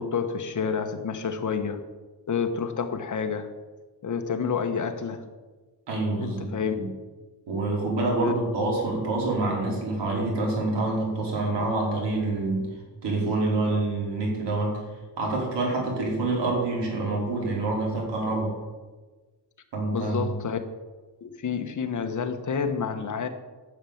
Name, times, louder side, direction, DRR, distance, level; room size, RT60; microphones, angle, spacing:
voice 1, 0.0-1.8 2.3-3.5 4.0-5.3 6.2-6.7 8.2-8.3 19.9-20.6 21.2-23.3, left 6 dB, 45° left, 7 dB, 1.2 m, -29 dB
voice 2, 5.9-6.9 7.5-12.7 13.0-14.8 15.2-18.5 19.7-20.3, right 2 dB, 90° right, -2 dB, 4.9 m, -27 dB
12.5 x 7.2 x 8.6 m, 1.3 s
wide cardioid pair, 145°, 41 cm